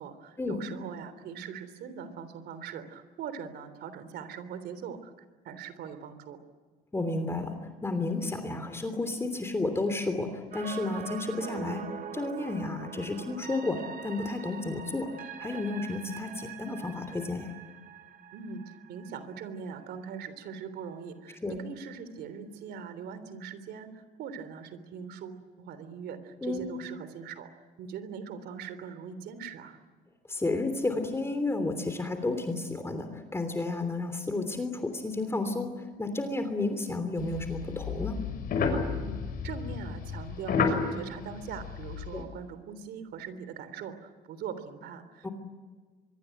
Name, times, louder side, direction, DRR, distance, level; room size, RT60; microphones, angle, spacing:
voice 1, 0.0-5.1 5.4-6.4 18.3-27.5 27.8-29.8 39.0-45.3, right 6 dB, 75° right, 12 dB, 3.4 m, -41 dB
voice 2, 6.9-11.9 12.1-15.1 15.4-17.5 21.4-21.6 26.4-26.7 30.3-38.2 42.1-42.3 45.2-45.3, left 2 dB, 15° left, 8 dB, 3.2 m, -32 dB
sound 1, 10.5-20.5 20.9-21.0, right 8 dB, 55° right, 2.0 m, -44 dB
sound 2, 37.2-42.2, left 5 dB, 60° left, 6.3 m, -31 dB
24.5 x 22.5 x 9.3 m, 1.4 s
cardioid pair, 110°, 17 cm